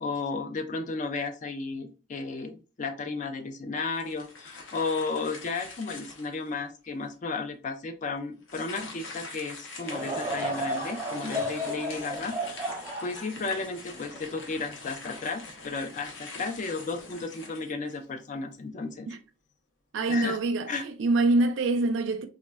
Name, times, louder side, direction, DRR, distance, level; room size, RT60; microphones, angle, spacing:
voice 1, 0.0-19.1 20.1-20.4 20.7-20.8, left 4 dB, 40° left, 0.4 m, -34 dB
sound 1, 3.9-6.5 7.1-7.2 8.4-18.2, left 3 dB, 75° left, 0.7 m, -44 dB
Laughter / Crowd, 9.8-15.3 15.8-15.9 16.7-17.0, equal, 10° right, 0.6 m, -34 dB
voice 2, 19.9-22.3, right 2 dB, 70° right, 0.4 m, -25 dB
3.3 x 2.1 x 2.2 m
head